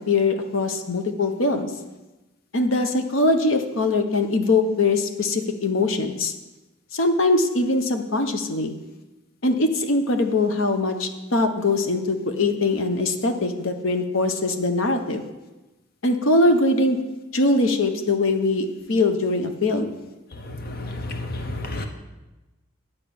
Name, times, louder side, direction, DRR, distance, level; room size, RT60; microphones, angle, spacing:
voice 1, 0.1-1.7 2.5-6.3 6.9-8.7 9.4-15.2 16.0-17.0 17.3-19.9, left 2 dB, 75° left, 7 dB, 0.9 m, -22 dB
voice 2, 20.7-21.9, left 2 dB, 50° left, 5 dB, 0.8 m, -31 dB
10.0 x 5.6 x 8.6 m, 1.1 s
head